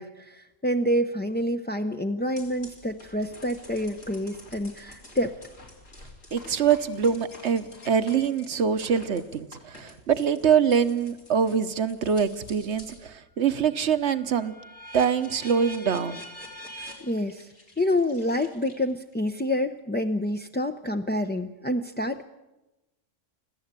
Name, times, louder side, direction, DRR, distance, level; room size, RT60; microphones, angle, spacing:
voice 1, 0.0-5.3 17.0-17.5 17.8-22.3, left 1 dB, 10° left, 4 dB, 0.5 m, -27 dB
sound 1, 2.4-13.1 13.5-19.1, equal, 85° left, 4.2 m, -47 dB
voice 2, 6.3-14.5 14.9-16.2, right 7 dB, 65° right, 12 dB, 1.3 m, -24 dB
24.5 x 16.0 x 8.3 m, 1.0 s
omnidirectional pair, 1.3 m